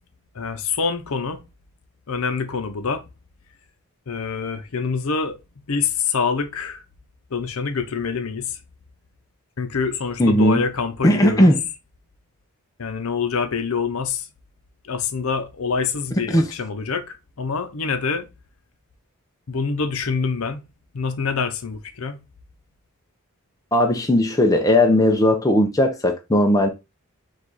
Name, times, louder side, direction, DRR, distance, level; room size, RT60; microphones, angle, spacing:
voice 1, 0.3-1.4 2.1-3.0 4.1-5.4 5.7-6.8 7.3-8.6 9.6-11.5 12.8-14.3 14.8-18.3 19.5-20.6 20.9-22.2, left 5 dB, 75° left, 0.6 m, -26 dB
voice 2, 10.2-10.6 11.0-11.6 16.3-16.4 23.7-26.7, left 1 dB, 15° left, 0.5 m, -17 dB
4.7 x 2.4 x 3.9 m
head